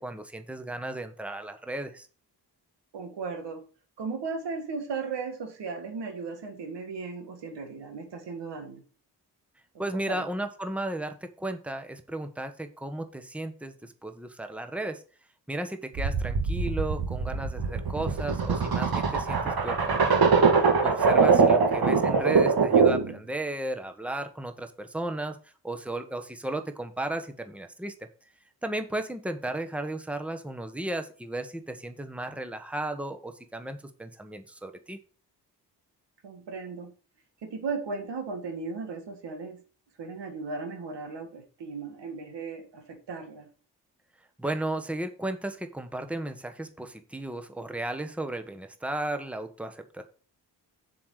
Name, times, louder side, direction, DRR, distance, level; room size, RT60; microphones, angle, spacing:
voice 1, 0.0-2.1 9.8-15.0 15.5-20.2 20.5-27.9 28.6-35.0 44.4-50.0, right 1 dB, 5° right, 7 dB, 1.3 m, -34 dB
voice 2, 2.9-3.6 4.0-8.8 9.7-10.3 21.3-21.7 36.2-36.9 37.4-39.6 40.0-43.5, right 4 dB, 75° right, 5 dB, 2.0 m, -36 dB
sound 1, 16.0-23.1, right 5 dB, 55° right, 1.9 m, -23 dB
7.0 x 4.9 x 6.5 m, 0.39 s
supercardioid pair, 45°, 42 cm